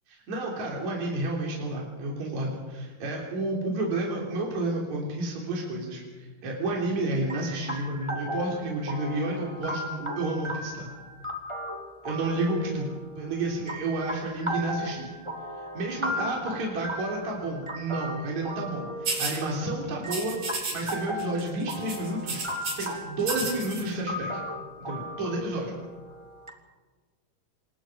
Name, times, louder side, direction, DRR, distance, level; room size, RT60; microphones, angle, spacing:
voice 1, 0.1-10.9 12.0-12.9 13.2-15.1 15.6-24.4 24.8-25.8, right 2 dB, 55° right, -2 dB, 4.8 m, -31 dB
sound 1, 7.3-26.5, equal, 10° right, 1.7 m, -37 dB
sound 2, 19.1-19.4 20.1-20.9 21.2-21.4 21.7-22.9 23.2-23.8, right 3 dB, 75° right, 7.4 m, -32 dB
27.5 x 22.5 x 5.2 m, 1.4 s
omnidirectional pair, 3.9 m